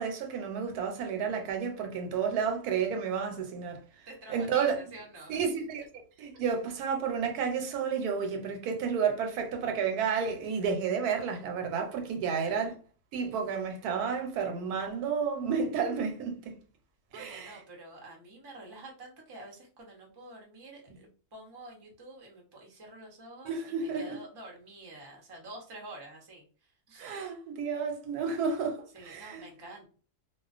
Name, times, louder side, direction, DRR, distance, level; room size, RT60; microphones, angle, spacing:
voice 1, 0.0-3.8 4.3-4.7 5.3-5.8 6.2-12.7 13.1-16.6 17.1-17.6 23.4-24.2 27.0-29.5, right 6 dB, 90° right, 1.1 m, -31 dB
voice 2, 4.1-5.6 12.2-12.8 17.1-27.1 28.9-29.9, right 2 dB, 30° right, 0.4 m, -48 dB
2.3 x 2.3 x 2.4 m
omnidirectional pair, 1.6 m